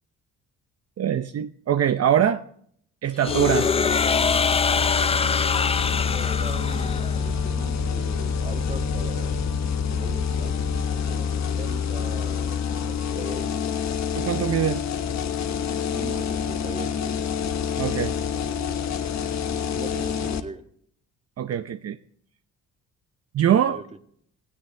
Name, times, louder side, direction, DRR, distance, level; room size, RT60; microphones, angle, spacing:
voice 1, 1.0-2.4 3.0-3.7 14.1-14.8 17.8-18.1 21.4-22.0 23.3-23.8, right 9 dB, 55° right, 8 dB, 0.8 m, -23 dB
sound 1, 3.2-7.3, left 5 dB, 20° left, 0.5 m, -24 dB
sound 2, 3.3-20.4, left 7 dB, 65° left, 1.4 m, -27 dB
sound 3, 5.7-11.0, equal, 80° right, 2.8 m, -38 dB
voice 2, 6.1-9.5 9.9-13.7 15.9-17.0 19.5-20.7 23.7-23.8, right 3 dB, 20° right, 6 dB, 1.7 m, -40 dB
16.5 x 16.5 x 3.4 m, 0.63 s
cardioid pair, 90°, 30 cm